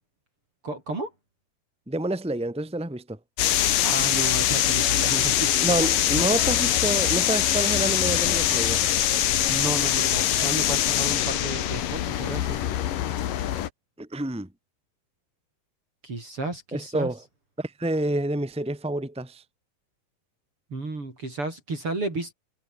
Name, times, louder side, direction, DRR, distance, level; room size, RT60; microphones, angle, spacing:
voice 1, 0.6-1.1 3.8-5.8 9.5-12.6 16.0-17.1 20.7-22.3, right 2 dB, 35° right, 6.4 m, -32 dB
voice 2, 1.9-3.2 5.6-8.8 14.0-14.5 16.7-17.2 17.6-19.4, right 1 dB, ahead, 3.1 m, -28 dB
sound 1, 3.4-13.7, left 11 dB, 70° left, 3.1 m, -23 dB
omnidirectional pair, 4.3 m